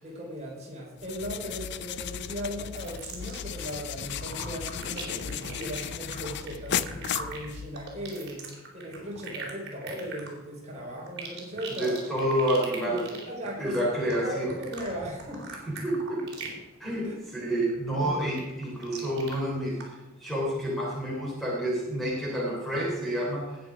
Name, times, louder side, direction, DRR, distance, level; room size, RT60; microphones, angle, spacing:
voice 1, 0.0-8.4 8.7-12.0 12.9-15.4 17.0-17.2 18.0-18.2, equal, 35° right, -3 dB, 4.3 m, -38 dB
sound 1, 1.0-8.0, left 8 dB, 55° left, 0.5 m, -35 dB
sound 2, 2.7-3.8 4.1-16.7 17.0-17.3 17.7-19.3 19.8-19.9, right 3 dB, 55° right, 3.8 m, -41 dB
voice 2, 11.8-13.0 13.6-14.5 15.7-16.2 16.8-19.9 20.2-23.6, equal, ahead, -4 dB, 3.4 m, -29 dB
19.0 x 6.6 x 4.9 m, 1.1 s
head